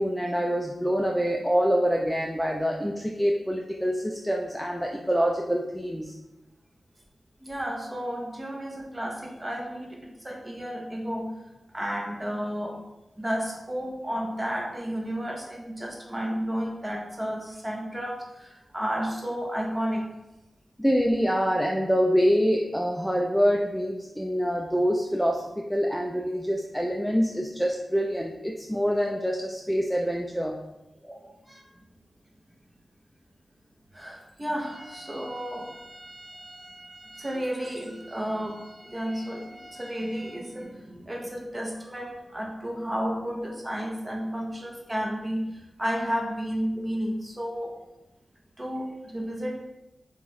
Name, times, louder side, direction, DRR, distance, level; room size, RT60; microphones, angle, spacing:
voice 1, 0.0-6.1 20.8-30.6 31.0-31.3, equal, ahead, 0 dB, 0.3 m, -26 dB
voice 2, 7.4-11.3 11.7-12.8 13.2-20.0 31.5-31.6 33.9-45.4 45.8-47.7 48.6-49.6, equal, 20° right, -1 dB, 0.8 m, -32 dB
6.0 x 2.4 x 3.1 m, 0.99 s
wide cardioid pair, 115°, 0 cm